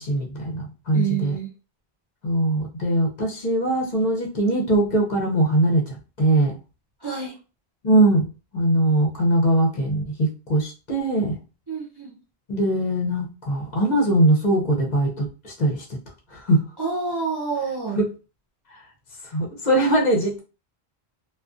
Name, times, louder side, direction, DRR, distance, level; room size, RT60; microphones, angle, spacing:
voice 1, 0.0-1.4 2.2-6.6 7.8-8.2 8.5-11.3 12.5-15.8 16.3-16.6 18.0-18.1 18.7-18.8 19.2-20.4, right 1 dB, 50° left, 0 dB, 0.7 m, -21 dB
voice 2, 0.9-1.5 7.0-7.4 11.7-12.1 16.8-18.0, right 5 dB, 35° right, -3 dB, 0.4 m, -28 dB
2.4 x 2.3 x 2.4 m, 0.32 s
omnidirectional pair, 1.1 m